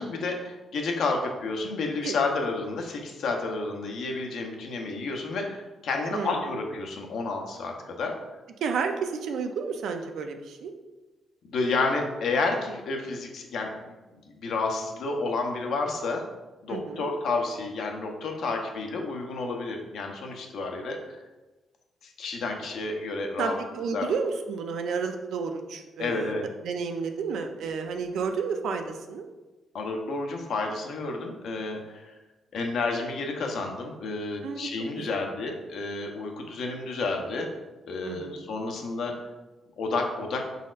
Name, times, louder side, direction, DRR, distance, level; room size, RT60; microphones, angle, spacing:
voice 1, 0.0-8.1 11.4-13.7 14.4-16.2 16.6-21.2 22.0-23.6 23.9-24.1 26.0-26.5 29.7-32.1 32.5-37.5 37.9-39.1 39.8-40.4, left 3 dB, 70° left, 2 dB, 0.7 m, -30 dB
voice 2, 6.1-6.5 8.6-10.7 16.7-17.1 23.4-26.3 26.6-29.3 34.4-34.7 35.0-35.2 38.0-38.4, right 5 dB, 75° right, 5 dB, 0.5 m, -31 dB
5.1 x 4.0 x 2.5 m, 1.1 s
cardioid pair, 140°, 0 cm